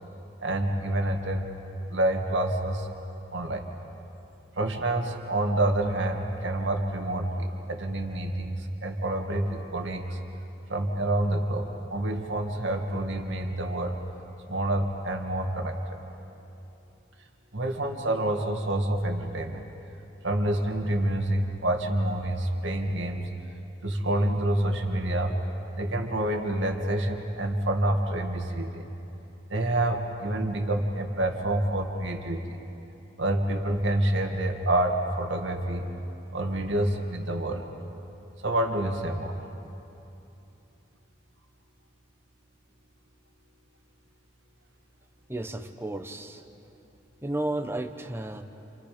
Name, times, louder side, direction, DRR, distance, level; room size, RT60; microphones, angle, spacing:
voice 1, 0.4-1.5 1.9-2.9 3.3-3.6 4.6-10.0 10.7-14.0 14.5-15.8 17.5-19.6 20.2-23.3 23.8-25.3 25.8-28.8 29.5-32.6 33.2-35.9 36.3-37.7 38.4-39.4, right 1 dB, 75° right, 3 dB, 2.2 m, -27 dB
voice 2, 45.3-46.4 47.2-48.4, right 1 dB, 10° right, 7 dB, 1.0 m, -33 dB
30.0 x 28.5 x 5.2 m, 2.8 s
head